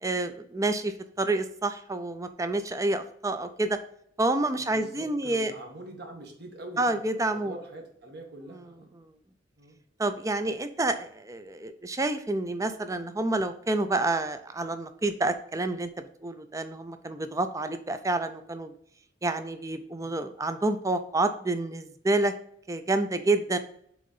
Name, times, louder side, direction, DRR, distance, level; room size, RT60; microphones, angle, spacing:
voice 1, 0.0-3.8 4.2-5.5 6.8-7.6 8.9-9.1 10.0-18.7 19.2-22.3 22.7-23.6, right 2 dB, 15° right, 9 dB, 0.5 m, -28 dB
voice 2, 4.7-8.9 9.6-9.8, right 1 dB, 55° right, 1 dB, 1.6 m, -44 dB
7.1 x 3.8 x 5.5 m, 0.67 s
head